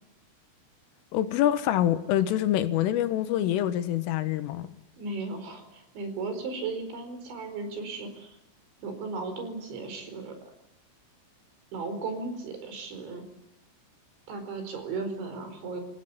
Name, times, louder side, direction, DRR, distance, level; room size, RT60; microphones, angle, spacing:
voice 1, 1.1-4.7, left 12 dB, 85° left, 3.9 m, -25 dB
voice 2, 5.0-8.4 8.8-10.3 11.7-13.2 14.3-15.8, right 3 dB, 65° right, 6.8 m, -36 dB
28.5 x 16.0 x 9.5 m
omnidirectional pair, 5.7 m